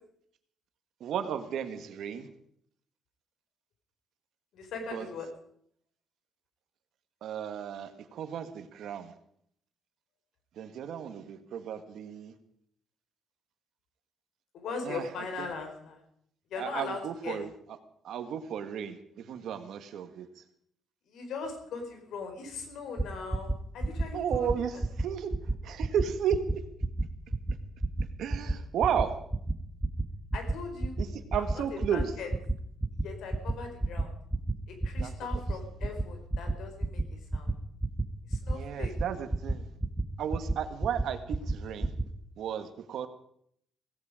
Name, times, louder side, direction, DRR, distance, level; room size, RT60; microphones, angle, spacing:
voice 1, 1.0-2.3 4.9-5.1 7.2-9.1 10.6-12.3 14.8-15.1 15.4-15.5 16.6-17.5 18.0-20.4 24.1-25.3 25.6-26.6 28.2-29.1 31.0-32.1 35.0-35.1 38.5-39.7 40.2-41.9 42.4-43.1, right 8 dB, 75° right, 9 dB, 1.8 m, -34 dB
voice 2, 4.5-5.3 14.5-16.0 16.5-17.4 21.1-24.5 30.3-30.9 31.7-32.3 33.0-34.1 34.7-37.5 38.3-38.9, left 4 dB, 75° left, 5 dB, 4.7 m, -39 dB
sound 1, 23.0-23.1 23.3-23.6 23.8-24.1 24.3-24.5 24.8-25.0 25.3-25.5 25.8-26.0 26.3-26.5 26.8-27.0 27.3-27.5 27.8-28.0 28.3-28.5 28.8-29.0 29.3-29.5 29.8-30.0 30.3-30.5 30.8-31.0 31.3-31.5 31.8-32.0 32.3-32.5 32.8-33.0 33.3-33.5 33.8-34.0 34.3-34.5 34.8-35.0 35.3-35.5 35.8-36.0 36.3-36.5 36.8-37.0 37.3-37.5 37.8-38.0 38.3-38.5 38.8-39.0 39.3-39.5 39.8-40.0 40.3-40.5 40.8-41.0 41.3-41.5 41.8-42.0, right 2 dB, 10° right, 1.5 m, -28 dB
17.0 x 16.5 x 5.1 m, 0.69 s
cardioid pair, 100°, 0 cm